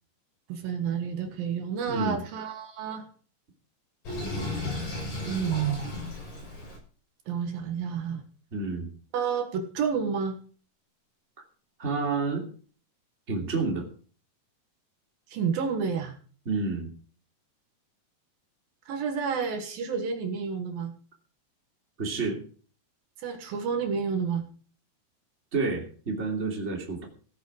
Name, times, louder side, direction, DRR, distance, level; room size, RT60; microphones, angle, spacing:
voice 1, 0.5-3.1 5.3-5.8 7.3-8.2 9.1-10.4 15.3-16.1 18.9-20.9 23.2-24.4, right 6 dB, 70° right, 5 dB, 3.2 m, -30 dB
voice 2, 1.9-2.2 8.5-8.9 11.8-12.5 13.3-13.9 16.4-16.9 22.0-22.4 25.5-27.1, right 4 dB, 20° right, 0 dB, 2.9 m, -29 dB
Sink (filling or washing), 4.0-6.8, left 2 dB, 65° left, 8.7 m, -34 dB
16.0 x 10.0 x 4.9 m, 0.42 s
omnidirectional pair, 4.3 m